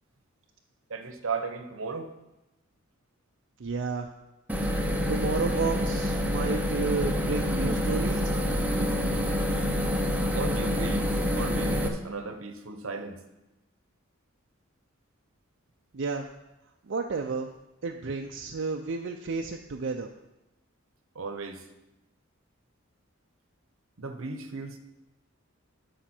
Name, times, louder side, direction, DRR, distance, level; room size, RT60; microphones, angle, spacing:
voice 1, 0.9-2.1 7.6-7.8 8.8-9.0 10.3-13.2 21.2-21.6 24.0-24.8, right 3 dB, 75° right, 7 dB, 0.9 m, -35 dB
voice 2, 3.6-4.1 5.1-8.3 15.9-16.3 16.9-17.5 17.8-20.1, right 4 dB, 60° right, 3 dB, 0.5 m, -31 dB
sound 1, 4.5-11.9, equal, 10° right, 0.7 m, -27 dB
12.5 x 5.1 x 4.4 m, 0.97 s
head